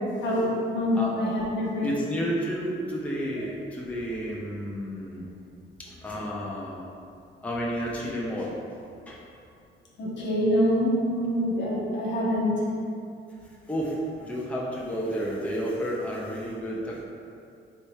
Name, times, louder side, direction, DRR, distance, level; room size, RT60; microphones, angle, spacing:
voice 1, 0.2-1.9 10.0-12.5, equal, 65° left, -5 dB, 1.1 m, -25 dB
voice 2, 1.8-5.2 5.8-6.8 7.4-8.6 9.1-9.2 13.4-17.0, equal, 5° left, -5 dB, 0.7 m, -31 dB
3.3 x 3.0 x 4.3 m, 2.5 s
cardioid pair, 90°, 20 cm